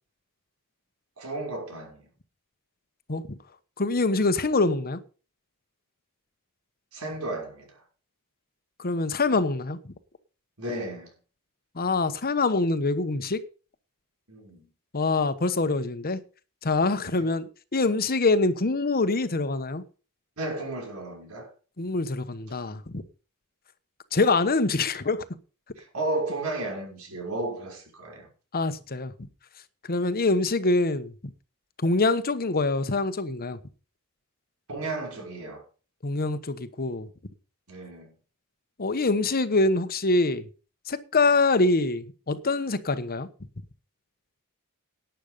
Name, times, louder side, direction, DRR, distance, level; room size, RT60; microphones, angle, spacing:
voice 1, 1.2-2.0 6.9-7.8 10.6-11.1 14.3-14.6 17.0-17.3 20.4-21.5 25.8-28.3 34.7-35.6 37.7-38.1, right 2 dB, 80° right, 5.9 m, -33 dB
voice 2, 3.8-5.0 8.8-9.9 11.7-13.4 14.9-16.2 16.6-19.8 21.8-23.0 24.1-25.2 28.5-29.1 29.9-31.1 31.8-33.6 36.0-37.1 38.8-40.5 40.9-43.3, left 3 dB, 45° left, 1.1 m, -25 dB
12.0 x 9.1 x 5.4 m
head